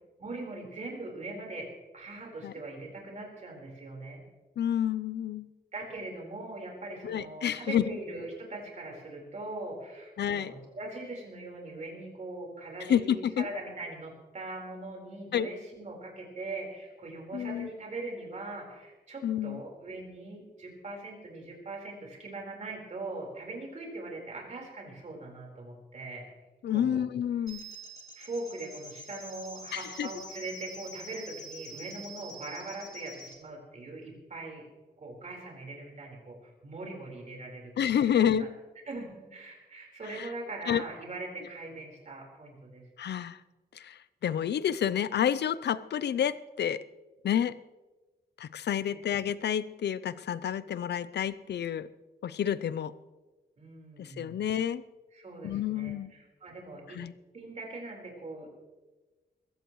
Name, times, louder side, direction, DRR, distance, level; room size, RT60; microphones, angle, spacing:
voice 1, 0.2-1.7 1.9-4.2 5.7-26.2 26.7-27.0 28.2-34.6 35.0-38.5 38.9-42.8 48.9-49.0 53.6-54.4 55.1-57.0 57.3-58.5, right 2 dB, 45° right, -1 dB, 4.4 m, -41 dB
voice 2, 4.6-5.5 7.0-7.8 10.2-10.5 12.9-13.5 15.3-15.5 17.3-17.7 19.2-19.6 26.6-27.6 29.7-30.1 37.8-38.5 40.2-40.3 40.7-40.8 43.0-43.4 43.8-46.8 47.2-47.5 48.4-51.9 52.2-52.9 54.0-54.8 55.4-56.1 57.0-57.1, left 9 dB, 80° left, 16 dB, 0.6 m, -29 dB
sound 1, 27.5-33.4, equal, 20° left, 2.2 m, -46 dB
21.5 x 16.0 x 3.1 m, 1.2 s
wide cardioid pair, 180°, 18 cm